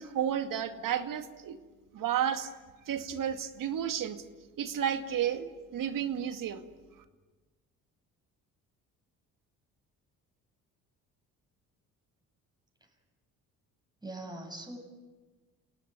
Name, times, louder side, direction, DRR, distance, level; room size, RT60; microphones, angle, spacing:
voice 1, 0.0-1.6 1.9-2.5 2.9-4.2 4.6-6.6, right 9 dB, 65° right, 8 dB, 2.2 m, -32 dB
voice 2, 14.0-14.8, right 2 dB, 10° right, 2 dB, 8.0 m, -42 dB
29.0 x 18.0 x 9.6 m, 1.3 s
supercardioid pair, 70°, 36 cm